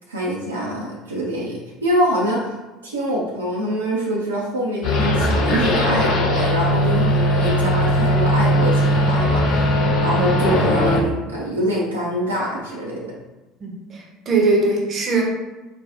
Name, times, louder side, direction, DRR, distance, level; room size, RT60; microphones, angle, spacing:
voice 1, 0.1-2.4 2.8-9.7 10.0-13.1, equal, 80° right, -4 dB, 0.5 m, -24 dB
sound 1, 4.8-11.0, equal, 50° left, 1.0 m, -19 dB
voice 2, 13.6-15.2, right 3 dB, 40° right, -1 dB, 0.8 m, -20 dB
4.1 x 2.2 x 2.8 m, 1.1 s
figure-of-eight pair, 65°, 0 cm